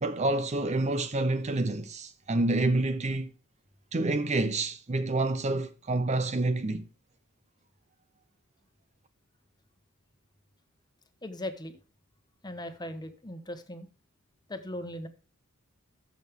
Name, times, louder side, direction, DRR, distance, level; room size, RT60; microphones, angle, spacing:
voice 1, 0.0-3.3 3.9-6.9, right 2 dB, 30° right, 0.6 m, -28 dB
voice 2, 11.2-11.8 12.4-13.9 14.5-15.1, left 1 dB, 20° left, 1.2 m, -38 dB
14.0 x 6.3 x 3.6 m
head